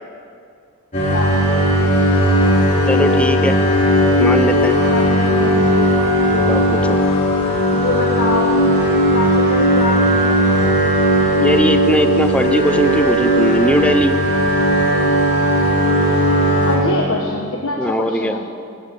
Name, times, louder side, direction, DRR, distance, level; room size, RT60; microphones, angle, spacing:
sound 1, 0.9-16.7, equal, 35° left, 4.4 m, -16 dB
voice 1, 2.9-3.6 4.2-4.8 6.3-7.0 11.4-14.1 17.8-18.4, left 1 dB, 5° left, 8 dB, 0.5 m, -19 dB
voice 2, 4.9-5.6 7.7-8.8 9.1-10.6 16.7-18.5, left 2 dB, 75° left, 0 dB, 1.3 m, -24 dB
15.5 x 14.5 x 5.2 m, 2.3 s
head